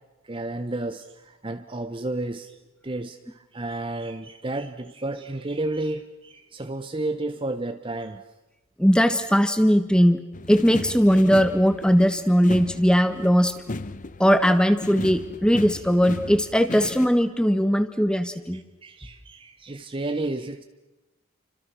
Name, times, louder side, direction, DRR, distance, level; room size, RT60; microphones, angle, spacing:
voice 1, 0.2-2.6 2.8-8.2 18.5-20.6, right 2 dB, 25° right, 8 dB, 0.8 m, -32 dB
voice 2, 8.8-10.2 10.5-13.5 14.2-18.6, equal, 5° left, 10 dB, 1.4 m, -19 dB
sound 1, 10.3-17.1, left 2 dB, 35° left, 0.8 m, -36 dB
29.5 x 25.5 x 6.1 m, 1.1 s
head